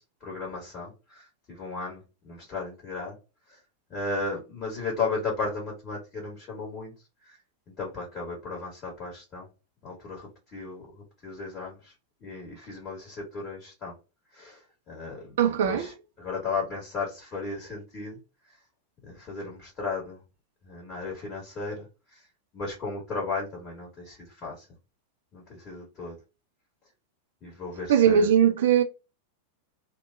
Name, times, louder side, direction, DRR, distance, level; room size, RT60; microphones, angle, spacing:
voice 1, 0.0-3.1 3.5-3.6 3.9-6.9 7.2-7.4 7.8-9.5 9.8-10.8 11.2-11.9 12.2-13.9 14.3-14.6 14.9-18.2 19.0-20.2 20.6-22.2 22.5-24.7 25.3-26.2 27.4-28.3, left 3 dB, 30° left, 1.5 m, -35 dB
voice 2, 15.4-15.9 27.9-28.8, right 8 dB, 60° right, 0.5 m, -20 dB
2.9 x 2.1 x 2.6 m
figure-of-eight pair, 90°, 0 cm